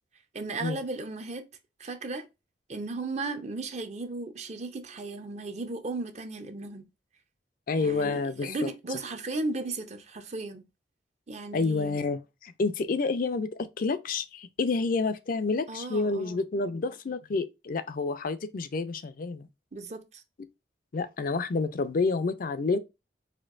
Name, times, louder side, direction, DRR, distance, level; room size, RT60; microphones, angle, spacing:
voice 1, 0.3-1.5 1.8-2.3 2.7-6.8 7.8-10.6 11.3-12.0 15.7-16.4 19.7-20.2, right 3 dB, 40° right, 0.6 m, -35 dB
voice 2, 7.7-8.6 11.5-19.5 20.9-22.8, left 3 dB, 50° left, 0.4 m, -29 dB
4.3 x 2.6 x 2.4 m
head